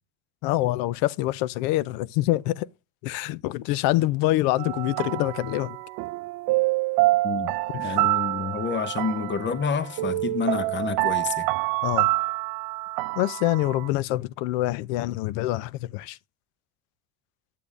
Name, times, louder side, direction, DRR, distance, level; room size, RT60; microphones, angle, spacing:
voice 1, 0.4-2.7 3.0-5.8 7.8-8.0 11.8-12.1 13.2-16.2, left 16 dB, 80° left, 0.5 m, -25 dB
sound 1, 4.6-13.9, right 20 dB, 65° right, 0.5 m, -27 dB
voice 2, 7.2-11.5, left 6 dB, 30° left, 0.8 m, -29 dB
8.4 x 6.9 x 2.5 m
supercardioid pair, 110°, 39 cm